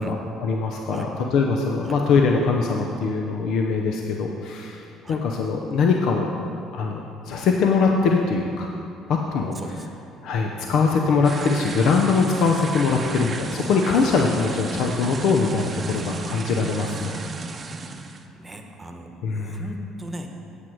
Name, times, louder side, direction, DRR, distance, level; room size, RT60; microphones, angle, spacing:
voice 1, 0.0-6.3 6.7-8.7 9.1-9.6 10.2-17.2 19.2-19.6, left 4 dB, 70° left, 1 dB, 0.7 m, -22 dB
voice 2, 9.5-9.9 10.6-10.8 12.9-13.1 15.9-16.1 18.3-20.3, right 1 dB, 20° right, 4 dB, 1.0 m, -38 dB
sound 1, 11.2-18.2, right 3 dB, 35° right, 0.7 m, -34 dB
8.3 x 8.1 x 4.6 m, 2.7 s
supercardioid pair, 70°, 0 cm